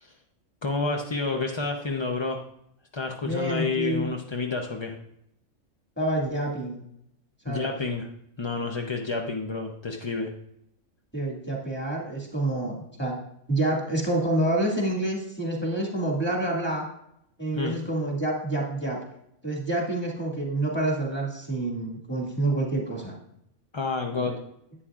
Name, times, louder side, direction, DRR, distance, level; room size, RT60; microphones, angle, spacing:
voice 1, 0.6-2.4 2.9-4.9 7.5-8.1 8.4-10.3 17.5-17.8 23.7-24.4, left 4 dB, 40° left, 2 dB, 0.4 m, -29 dB
voice 2, 3.2-4.1 6.0-6.8 7.4-7.7 11.1-13.2 13.5-16.9 17.4-19.0 19.4-23.1 24.1-24.3, right 1 dB, 10° left, -2 dB, 2.0 m, -28 dB
11.0 x 8.8 x 2.4 m, 0.75 s
omnidirectional pair, 1.4 m